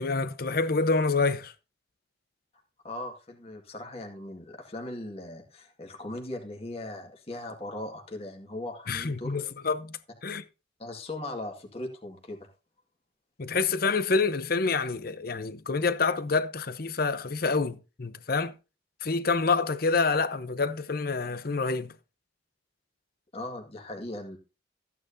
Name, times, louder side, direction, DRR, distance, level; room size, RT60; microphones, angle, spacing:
voice 1, 0.0-1.5 8.9-10.4 13.4-18.5 19.0-21.9, left 4 dB, 50° left, 0.8 m, -27 dB
voice 2, 2.8-9.4 10.8-12.5 23.3-24.4, left 1 dB, 30° left, 1.9 m, -39 dB
14.0 x 9.5 x 2.7 m
head